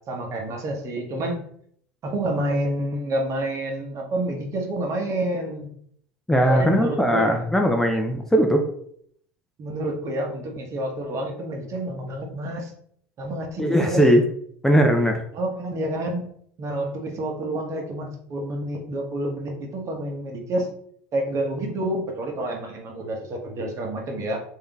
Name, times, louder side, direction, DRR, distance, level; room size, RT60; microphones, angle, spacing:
voice 1, 0.1-1.4 2.0-5.7 6.5-7.5 9.6-12.7 13.2-14.1 15.3-16.3 16.6-20.7 21.1-24.4, right 1 dB, 45° right, 2 dB, 1.0 m, -28 dB
voice 2, 6.3-8.6 13.6-14.2 14.6-15.2, equal, 5° left, 3 dB, 0.5 m, -19 dB
3.5 x 2.7 x 3.5 m, 0.65 s
hypercardioid pair, 85°, 7 cm